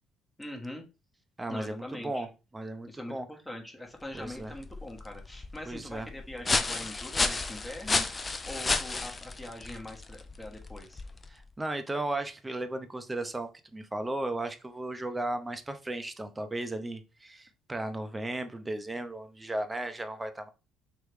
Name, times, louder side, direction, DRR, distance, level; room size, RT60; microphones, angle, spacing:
voice 1, 0.4-0.8 1.5-2.3 2.9-11.0, left 1 dB, 10° left, 1.3 m, -42 dB
voice 2, 1.4-2.3 2.5-3.3 4.1-4.5 5.7-6.1 11.3-20.5, right 2 dB, 15° right, 0.6 m, -35 dB
sound 1, 4.0-11.5, left 3 dB, 30° left, 0.5 m, -33 dB
3.1 x 3.0 x 3.3 m
hypercardioid pair, 60°, 0 cm